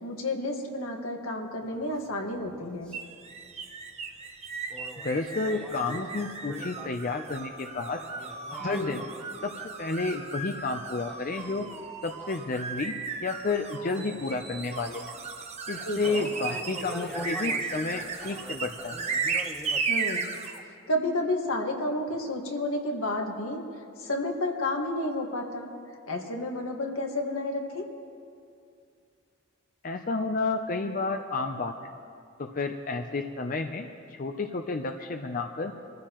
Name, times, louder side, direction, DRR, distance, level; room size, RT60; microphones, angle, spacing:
voice 1, 0.0-2.9 8.6-9.0 15.8-16.3 19.9-20.3 20.9-23.6 24.0-25.7 26.1-27.8, left 1 dB, 80° left, 2 dB, 1.7 m, -31 dB
sound 1, 1.6-10.3 10.5-13.6 13.8-19.8, equal, 5° left, 0.9 m, -44 dB
sound 2, 2.9-20.6, right 4 dB, 30° right, 0.9 m, -35 dB
voice 2, 5.0-8.0 8.5-9.0 9.4-9.5 9.8-11.7 12.0-12.9 13.2-15.0 15.7-19.0 29.8-31.7 32.4-35.7, left 3 dB, 40° left, 5 dB, 0.5 m, -31 dB
25.0 x 14.5 x 3.0 m, 2.3 s
head